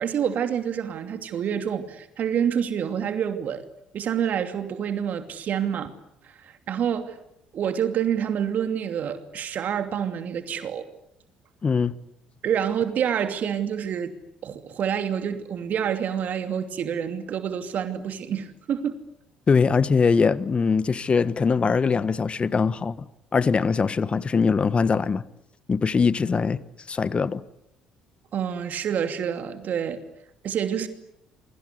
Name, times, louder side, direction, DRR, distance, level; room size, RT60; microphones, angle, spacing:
voice 1, 0.0-3.7 3.9-5.9 6.2-7.2 7.5-10.9 12.4-19.0 28.3-30.0 30.4-30.9, right 8 dB, 50° right, 2.8 m, -27 dB
voice 2, 11.6-11.9 19.5-23.0 23.3-25.2 25.7-26.6 26.9-27.4, left 5 dB, 35° left, 1.3 m, -22 dB
29.0 x 24.0 x 8.3 m
hypercardioid pair, 55°, 3 cm